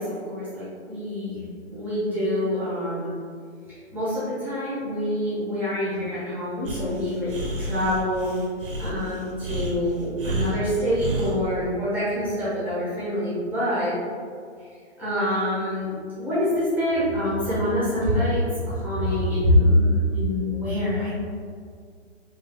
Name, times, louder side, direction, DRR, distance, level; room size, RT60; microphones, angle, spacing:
voice 1, 0.0-1.4 1.7-3.1 3.7-8.3 8.8-13.9 14.6-14.7 15.0-15.9 16.2-21.2, left 1 dB, 5° right, -11 dB, 1.0 m, -25 dB
Breathing, 6.6-11.4, right 2 dB, 50° right, 0.9 m, -31 dB
3.9 x 3.3 x 3.4 m, 2.2 s
hypercardioid pair, 160°, 35 cm